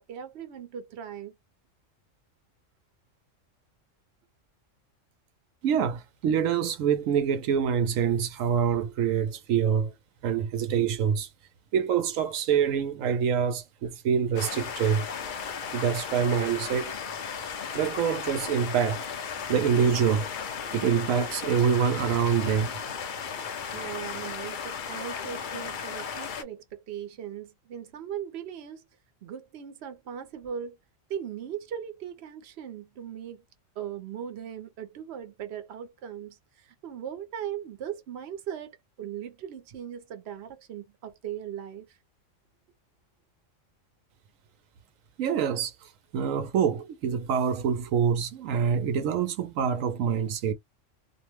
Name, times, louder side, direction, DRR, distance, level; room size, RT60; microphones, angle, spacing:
voice 1, 0.0-1.3 19.4-19.5 23.4-23.5 23.7-28.9 29.2-30.8 31.1-33.4 33.8-42.0, right 9 dB, 60° right, 0.9 m, -39 dB
voice 2, 5.6-9.9 10.2-11.3 11.7-15.0 15.7-16.9 17.7-19.1 19.5-20.3 20.7-22.7 45.2-45.7 46.1-50.5, right 7 dB, 90° right, 1.0 m, -25 dB
sound 1, 14.4-26.4, left 6 dB, 55° left, 0.6 m, -35 dB
2.7 x 2.1 x 3.0 m
omnidirectional pair, 1.3 m